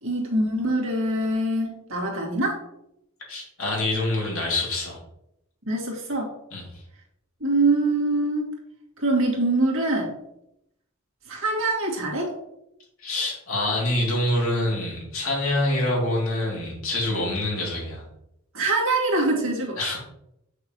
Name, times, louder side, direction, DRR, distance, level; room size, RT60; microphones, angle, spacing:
voice 1, 0.0-2.6 5.7-6.3 7.4-8.5 9.0-10.1 11.3-12.3 18.5-20.0, right 2 dB, 65° right, -1 dB, 2.2 m, -24 dB
voice 2, 3.3-5.0 6.5-6.6 13.0-18.0 19.8-20.0, left 1 dB, 70° left, -3 dB, 2.9 m, -26 dB
8.0 x 6.6 x 3.1 m, 0.81 s
head